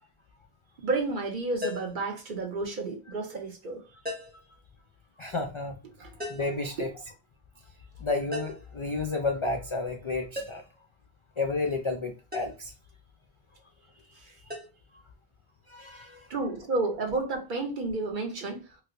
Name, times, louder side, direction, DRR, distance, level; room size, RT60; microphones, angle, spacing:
voice 1, 0.8-3.8 6.0-6.1 6.8-6.9 14.3-14.4 16.3-18.6, right 3 dB, 55° right, 0.8 m, -31 dB
sound 1, 1.6-2.0 4.1-4.5 6.2-6.6 8.3-8.7 10.3-10.8 12.3-12.6 14.5-14.7, left 2 dB, 10° right, 0.8 m, -37 dB
voice 2, 5.2-5.8 6.3-6.9 8.0-10.6 11.4-12.7 15.7-16.3, left 3 dB, 50° left, 0.3 m, -31 dB
4.3 x 2.0 x 2.5 m
omnidirectional pair, 1.1 m